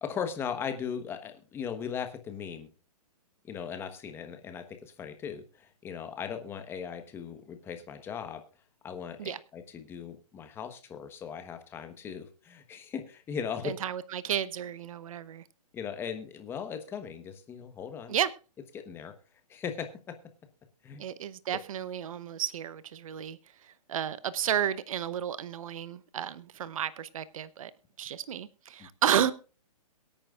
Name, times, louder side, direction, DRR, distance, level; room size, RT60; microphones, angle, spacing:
voice 1, 0.0-2.7 3.4-8.4 8.8-13.7 15.7-18.2 18.7-19.1 19.5-20.1 20.8-21.0 28.8-28.9, left 7 dB, 10° left, 7 dB, 1.1 m, -38 dB
voice 2, 13.6-15.4 18.1-18.3 21.0-23.4 23.9-27.7 28.0-29.3, right 9 dB, 60° right, 16 dB, 0.8 m, -32 dB
22.5 x 8.9 x 2.4 m, 0.34 s
hypercardioid pair, 155°, 20 cm